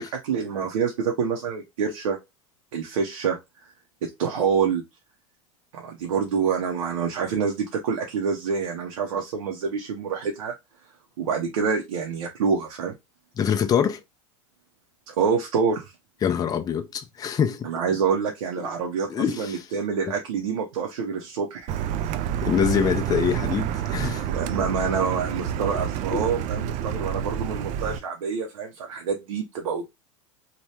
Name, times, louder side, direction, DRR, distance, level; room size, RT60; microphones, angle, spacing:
voice 1, 0.0-2.2 2.7-3.4 4.0-4.8 5.7-10.5 11.2-12.9 15.1-15.9 17.6-19.1 19.4-21.7 24.2-29.8, right 6 dB, 85° right, 0.7 m, -27 dB
voice 2, 13.4-14.0 16.2-17.7 19.1-19.7 22.4-24.3 26.1-26.3, left 8 dB, 20° left, 0.4 m, -24 dB
Car, 21.7-28.0, right 9 dB, 45° right, 0.4 m, -28 dB
2.8 x 2.2 x 3.2 m
hypercardioid pair, 110°, 18 cm